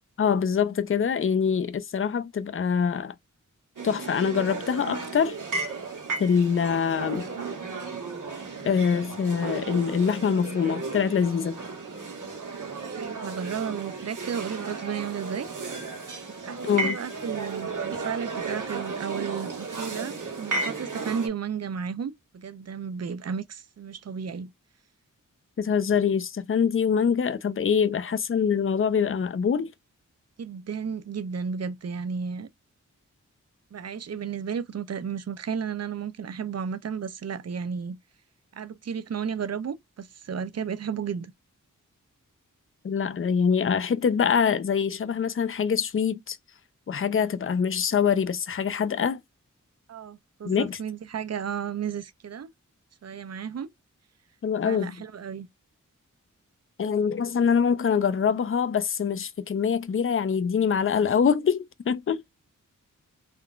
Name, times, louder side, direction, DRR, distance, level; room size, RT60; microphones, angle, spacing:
voice 1, 0.2-3.1 3.8-5.4 6.2-7.3 8.6-11.6 16.6-17.0 25.6-29.7 42.8-46.4 46.9-49.2 50.4-50.8 54.4-55.0 56.8-62.2, left 6 dB, 40° left, 0.5 m, -24 dB
sound 1, 3.8-21.3, right 4 dB, 75° right, 1.2 m, -34 dB
voice 2, 12.9-15.5 16.4-24.5 28.0-28.2 30.4-32.5 33.7-38.0 38.5-41.3 49.9-52.5 53.0-53.7 54.6-55.5, right 7 dB, 55° right, 0.5 m, -33 dB
3.6 x 2.2 x 2.4 m
cardioid pair, 50°, 32 cm